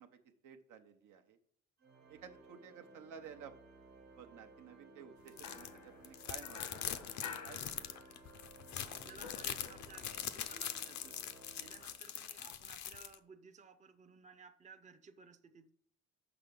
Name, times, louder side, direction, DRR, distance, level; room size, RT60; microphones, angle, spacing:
voice 1, 0.0-1.4 2.1-3.5 4.2-7.8 11.8-11.9, right 7 dB, 80° right, 0.9 m, -54 dB
Organ, 1.8-12.4, right 3 dB, 60° right, 1.4 m, -59 dB
sound 1, 5.3-5.7 6.0-13.1, left 10 dB, 65° left, 0.6 m, -43 dB
sound 2, 5.4-8.4 8.7-10.2, left 6 dB, 85° left, 1.3 m, -51 dB
voice 2, 8.7-11.2 11.5-15.7, right 5 dB, 25° right, 0.6 m, -57 dB
6.0 x 5.8 x 5.3 m
cardioid pair, 90°, 30 cm